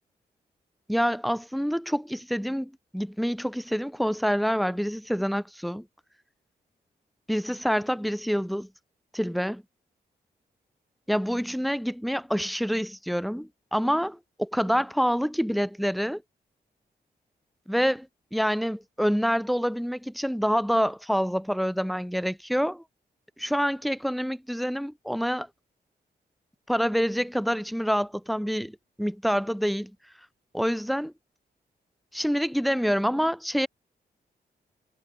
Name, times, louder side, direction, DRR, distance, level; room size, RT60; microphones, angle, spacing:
voice 1, 0.9-5.8 7.3-8.7 9.1-9.6 11.1-16.2 17.7-22.8 23.4-25.5 26.7-29.9 30.5-31.1 32.1-33.7, equal, ahead, 3.1 m, -27 dB
cardioid pair, 55°, 18 cm